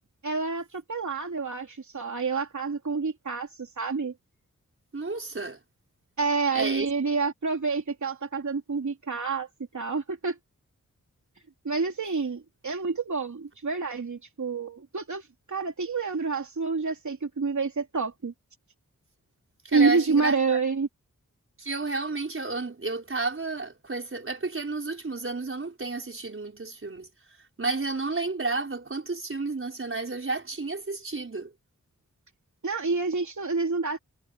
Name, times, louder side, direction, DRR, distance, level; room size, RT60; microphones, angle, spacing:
voice 1, 0.2-4.1 6.2-9.5 9.7-10.4 11.6-18.3 19.7-20.9 32.6-34.0, right 4 dB, 65° right, 3.4 m, -28 dB
voice 2, 4.9-5.6 6.5-6.9 19.6-20.6 21.6-27.1 27.6-31.5, right 3 dB, 40° right, 5.1 m, -31 dB
wide cardioid pair, 75°, 32 cm